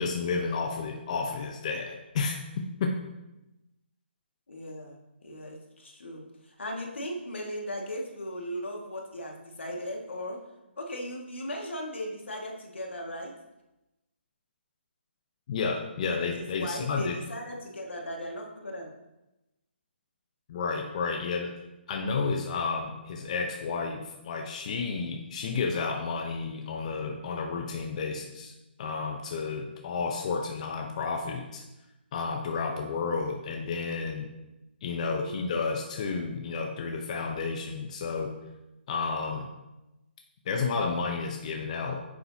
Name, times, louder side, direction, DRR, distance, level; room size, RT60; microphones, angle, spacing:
voice 1, 0.0-2.4 2.8-3.0 15.5-17.2 20.5-21.5 21.9-28.5 28.8-31.6 32.1-34.3 34.8-38.4 38.9-39.5 40.5-42.0, left 4 dB, 35° left, 2 dB, 0.8 m, -31 dB
voice 2, 4.5-5.0 5.2-10.4 10.8-13.3 16.3-18.9 35.0-35.5, equal, 85° left, 0 dB, 1.9 m, -37 dB
9.0 x 7.0 x 2.8 m, 0.96 s
hypercardioid pair, 155°, 6 cm